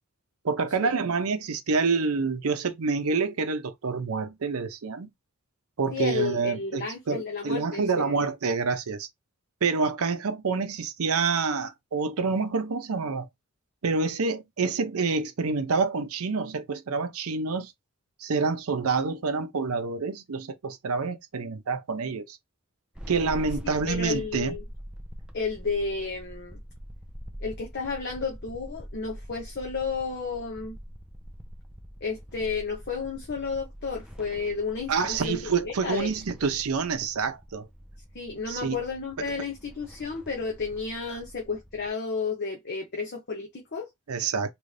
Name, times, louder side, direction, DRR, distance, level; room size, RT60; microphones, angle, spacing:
voice 1, 0.4-5.1 5.8-9.1 9.6-13.3 13.8-17.7 18.2-22.4 23.1-24.5 34.9-37.7 38.5-38.8 44.1-44.5, right 4 dB, 85° right, 0.6 m, -27 dB
voice 2, 5.9-8.2 23.9-24.6 25.3-26.6 27.4-30.8 32.0-36.1 38.1-43.9, left 4 dB, 50° left, 0.8 m, -32 dB
sound 1, 23.0-41.9, equal, 5° right, 0.4 m, -44 dB
3.0 x 2.6 x 3.2 m
head